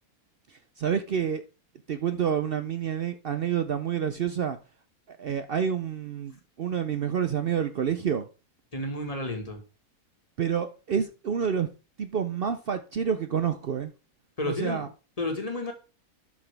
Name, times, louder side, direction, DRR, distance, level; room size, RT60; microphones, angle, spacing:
voice 1, 0.8-1.4 1.9-4.6 5.1-8.3 10.4-11.7 12.0-13.9 14.5-14.9, right 8 dB, 60° right, 0.6 m, -28 dB
voice 2, 8.7-9.6 14.4-14.9 15.2-15.7, left 2 dB, 25° left, 1.7 m, -31 dB
12.0 x 5.9 x 3.4 m
omnidirectional pair, 1.6 m